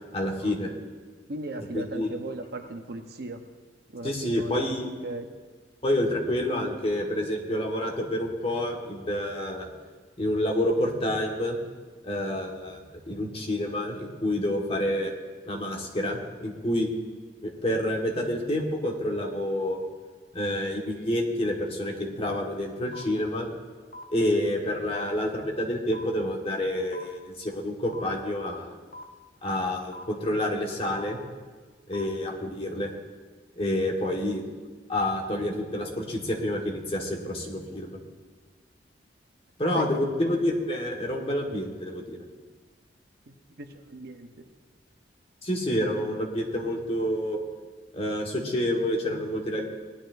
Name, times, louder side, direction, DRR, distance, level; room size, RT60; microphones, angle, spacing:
voice 1, 0.1-0.7 1.7-2.1 4.0-4.9 5.8-9.7 10.2-11.6 12.0-15.1 15.4-16.9 17.4-19.8 20.3-23.5 24.1-28.7 29.4-31.2 31.9-32.9 33.6-34.4 34.9-38.0 39.6-42.2 45.4-47.4 47.9-49.7, left 1 dB, 35° left, 0 dB, 1.5 m, -28 dB
voice 2, 1.3-3.4 3.9-4.8 5.0-5.3 39.8-40.1 43.3-44.4, right 2 dB, 60° right, 5 dB, 0.9 m, -37 dB
sound 1, 22.9-23.0 23.9-24.0 24.9-25.0 25.9-26.0 26.9-27.0 27.9-28.0 28.9-29.0 29.9-30.0 30.9-31.0 31.9-32.0, equal, 50° left, 1.0 m, -41 dB
18.5 x 11.5 x 2.6 m, 1.4 s
head